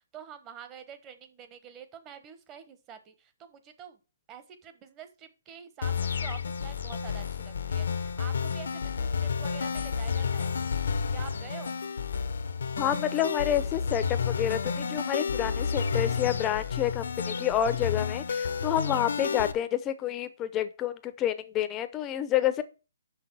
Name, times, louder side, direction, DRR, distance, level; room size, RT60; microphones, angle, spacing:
voice 1, 0.1-4.0 4.3-10.5 11.1-11.8, right 8 dB, 20° right, 9 dB, 1.1 m, -47 dB
sound 1, 5.8-19.5, left 6 dB, 75° left, 0.9 m, -31 dB
voice 2, 12.8-22.6, left 10 dB, 15° left, 11 dB, 0.7 m, -29 dB
6.0 x 5.7 x 6.2 m, 0.33 s
hypercardioid pair, 160°, 0 cm